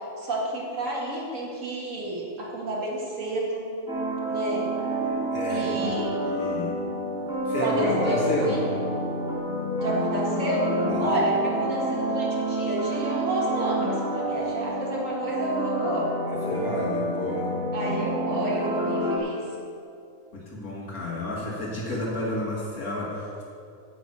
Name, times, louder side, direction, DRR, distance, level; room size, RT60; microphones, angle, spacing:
voice 1, 0.2-3.7 4.3-4.7 5.5-6.2 7.6-8.6 9.8-16.1 17.7-19.4, right 1 dB, 60° right, -4 dB, 2.4 m, -30 dB
sound 1, 3.9-19.2, right 1 dB, 5° right, 2.2 m, -28 dB
voice 2, 5.3-6.0 6.2-6.8 7.5-8.6 10.9-11.1 14.3-14.4 16.3-17.5 20.3-23.4, left 1 dB, 75° left, -4 dB, 2.3 m, -30 dB
10.0 x 6.1 x 8.3 m, 2.4 s
omnidirectional pair, 1.5 m